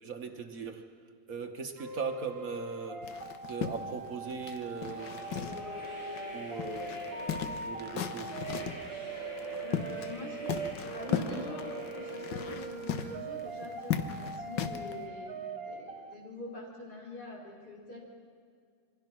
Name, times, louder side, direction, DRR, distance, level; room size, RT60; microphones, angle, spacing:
voice 1, 0.0-0.9 1.3-3.1 3.5-5.2 6.3-8.3 11.3-11.4, right 5 dB, 55° right, 1.6 m, -39 dB
sound 1, 1.8-16.1, right 3 dB, 40° right, 1.2 m, -42 dB
sound 2, 3.0-5.9 6.2-6.3 6.6-8.9 9.4-10.2 10.5-14.9, left 8 dB, 80° left, 1.7 m, -36 dB
sound 3, 5.0-12.7, left 1 dB, 40° left, 7.0 m, -44 dB
voice 2, 9.6-15.4 15.7-18.0, left 1 dB, 60° left, 5.2 m, -44 dB
27.0 x 23.5 x 6.1 m
omnidirectional pair, 1.9 m